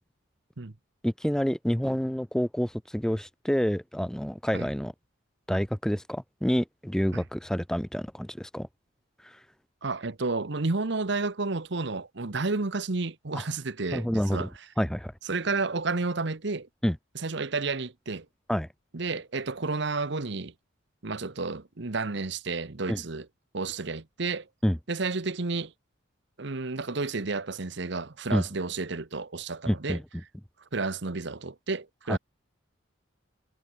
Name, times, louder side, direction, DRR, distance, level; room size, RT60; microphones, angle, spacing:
voice 1, 1.0-4.9 5.5-8.7 9.2-9.4 13.3-13.4 13.9-14.5 14.8-15.1 16.8-17.0 18.5-18.7 22.9-23.0 24.6-24.8 28.3-28.4 29.7-30.0 32.1-32.2, equal, 5° left, 0.5 m, -28 dB
voice 2, 9.8-14.5 15.3-16.7 17.1-18.3 18.9-20.5 21.0-23.3 23.5-24.5 24.9-25.7 26.4-30.0 30.7-32.2, right 3 dB, 60° right, 1.0 m, -31 dB
head